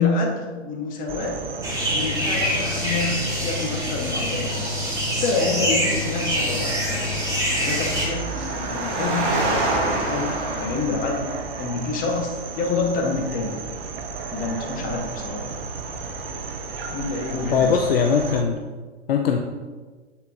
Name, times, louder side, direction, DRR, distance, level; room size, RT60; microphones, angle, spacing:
voice 1, 0.0-1.4 1.9-4.7 5.2-6.8 7.6-13.6 14.3-15.4 16.9-17.8, left 4 dB, 25° left, 0 dB, 1.1 m, -27 dB
sound 1, 1.1-18.4, right 5 dB, 55° right, 0.7 m, -35 dB
sound 2, 1.6-8.1, equal, 10° right, 1.2 m, -25 dB
Engine, 5.8-11.4, right 2 dB, 30° right, 1.3 m, -28 dB
voice 2, 17.5-18.6 19.1-19.4, left 6 dB, 55° left, 3 dB, 0.6 m, -20 dB
8.3 x 4.3 x 2.7 m, 1.4 s
figure-of-eight pair, 105°, 35 cm